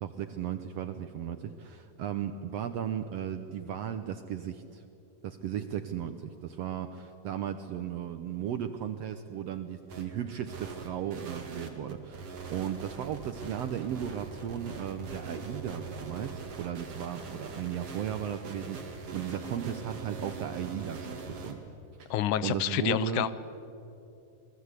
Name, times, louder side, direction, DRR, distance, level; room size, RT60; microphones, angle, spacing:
voice 1, 0.0-4.8 5.2-21.6 22.0-23.3, right 9 dB, 75° right, 9 dB, 1.5 m, -36 dB
sound 1, 9.9-10.0 10.5-21.5, right 4 dB, 50° right, 3.1 m, -42 dB
voice 2, 22.1-23.3, left 11 dB, 75° left, 15 dB, 2.1 m, -28 dB
28.0 x 20.0 x 8.2 m, 2.8 s
omnidirectional pair, 3.7 m